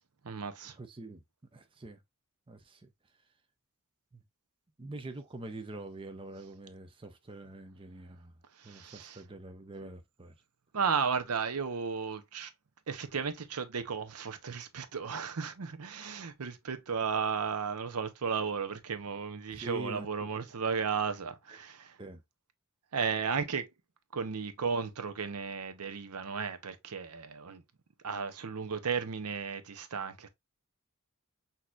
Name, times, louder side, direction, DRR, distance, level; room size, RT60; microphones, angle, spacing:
voice 1, 0.2-0.8 8.6-9.2 9.8-9.9 10.7-12.5 12.9-22.0 22.9-23.7 24.1-27.6 28.0-30.3, right 6 dB, 85° right, 0.7 m, -34 dB
voice 2, 0.8-1.2 1.5-2.0 2.5-2.9 4.1-4.2 4.8-8.3 8.6-10.4 19.5-20.5 21.5-21.7 22.0-22.2, right 2 dB, 25° right, 0.6 m, -45 dB
6.1 x 2.8 x 2.4 m
head